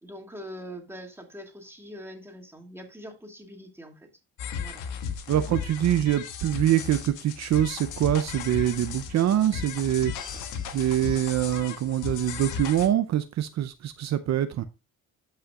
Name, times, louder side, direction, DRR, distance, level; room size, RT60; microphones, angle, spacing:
voice 1, 0.0-4.1 4.6-4.9 5.3-5.5, equal, 10° right, 2.5 m, -43 dB
sound 1, 4.4-12.9, left 7 dB, 90° left, 1.4 m, -35 dB
voice 2, 5.3-10.5 10.7-14.6, right 11 dB, 60° right, 0.7 m, -25 dB
13.0 x 5.7 x 2.4 m
cardioid pair, 90°, 30 cm